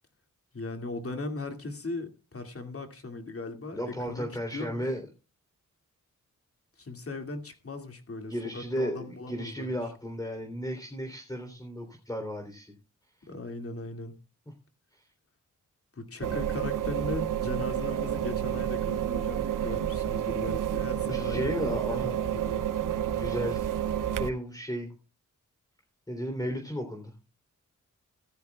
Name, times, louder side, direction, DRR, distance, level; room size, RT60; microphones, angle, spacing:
voice 1, 0.5-4.9 6.8-9.7 13.3-14.2 16.0-22.7, left 3 dB, 45° left, 2.3 m, -38 dB
voice 2, 3.7-5.0 8.3-12.7 16.2-16.3 21.1-22.2 23.1-23.7 24.2-24.9 26.1-27.1, equal, 10° left, 3.3 m, -34 dB
sound 1, 16.2-24.3, right 10 dB, 80° right, 0.8 m, -30 dB
15.5 x 13.0 x 2.3 m
cardioid pair, 65°, 32 cm